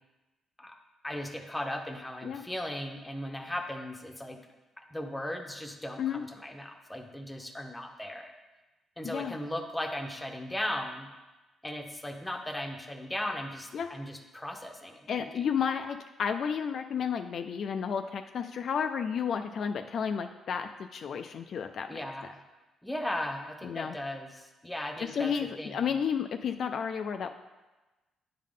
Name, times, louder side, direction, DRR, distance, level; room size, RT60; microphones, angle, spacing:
voice 1, 1.0-4.4 4.8-8.3 9.0-11.1 11.6-15.5 21.9-22.4 22.8-25.3 25.6-25.9, left 1 dB, 10° left, 4 dB, 0.8 m, -37 dB
voice 2, 9.0-9.3 13.7-13.9 15.1-22.0 23.6-23.9 25.0-27.3, left 7 dB, 60° left, 7 dB, 0.3 m, -32 dB
9.5 x 3.8 x 3.7 m, 1.1 s
cardioid pair, 90°, 0 cm